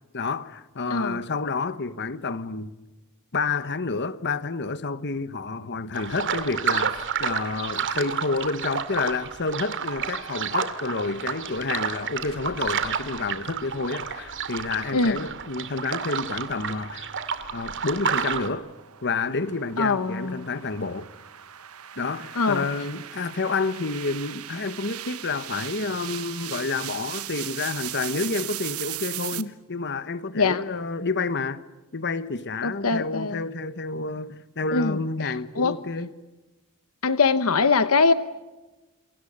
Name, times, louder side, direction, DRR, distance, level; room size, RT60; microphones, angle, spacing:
voice 1, 0.1-2.7 3.3-17.1 17.5-18.7 19.0-21.1 22.0-31.6 31.9-36.1, left 3 dB, 55° left, 1.3 m, -29 dB
sound 1, 5.9-18.5, right 6 dB, 60° right, 2.4 m, -30 dB
sound 2, 17.4-29.4, right 13 dB, 90° right, 1.4 m, -38 dB
voice 2, 19.8-20.5 22.4-22.6 29.4-29.5 30.3-30.6 32.6-33.4 34.7-35.0 35.2-35.7 37.0-38.1, left 4 dB, 75° left, 1.0 m, -22 dB
28.5 x 28.5 x 6.8 m
head